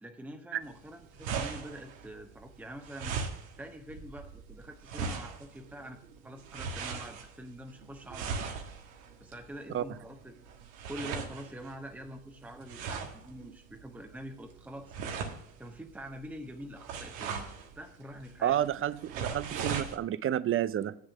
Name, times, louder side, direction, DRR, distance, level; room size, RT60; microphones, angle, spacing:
voice 1, 0.0-3.2 3.6-6.0 6.2-8.6 9.2-10.4 10.9-14.9 15.6-17.5 17.7-18.6, equal, 5° right, 0.9 m, -45 dB
sound 1, 0.6-20.0, right 5 dB, 85° right, 1.5 m, -40 dB
voice 2, 18.4-21.0, right 11 dB, 30° right, 0.5 m, -30 dB
8.2 x 6.6 x 6.0 m
supercardioid pair, 85°, 41 cm